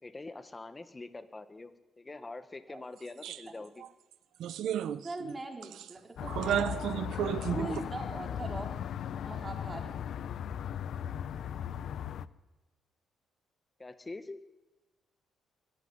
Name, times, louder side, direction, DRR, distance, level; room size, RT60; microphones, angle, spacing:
voice 1, 0.0-3.8 13.8-14.4, left 3 dB, 20° left, 11 dB, 1.8 m, -45 dB
sound 1, 3.2-3.4 3.8-3.9 4.4-5.3 5.6-5.9 6.3-7.8, right 10 dB, 80° right, 1.0 m, -33 dB
voice 2, 5.0-7.2 7.5-8.9 9.2-9.9, right 2 dB, 25° right, 3 dB, 4.6 m, -41 dB
sound 2, 6.2-12.3, left 9 dB, 70° left, 0.8 m, -37 dB
23.0 x 14.5 x 9.9 m, 1.1 s
cardioid pair, 90°, 0 cm